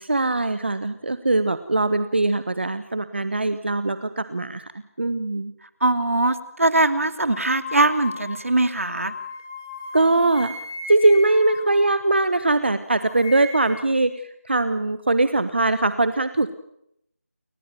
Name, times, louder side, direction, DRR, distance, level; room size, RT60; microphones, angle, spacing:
voice 1, 0.0-4.7 5.0-5.5 9.9-10.5 10.9-16.5, right 2 dB, 45° right, 12 dB, 1.4 m, -21 dB
voice 2, 5.8-9.1, right 2 dB, 65° right, 11 dB, 2.6 m, -21 dB
sound 1, 7.3-12.6 12.9-13.9, left 3 dB, 10° left, 2.8 m, -37 dB
29.5 x 13.5 x 9.1 m, 0.75 s
figure-of-eight pair, 180°, 8 cm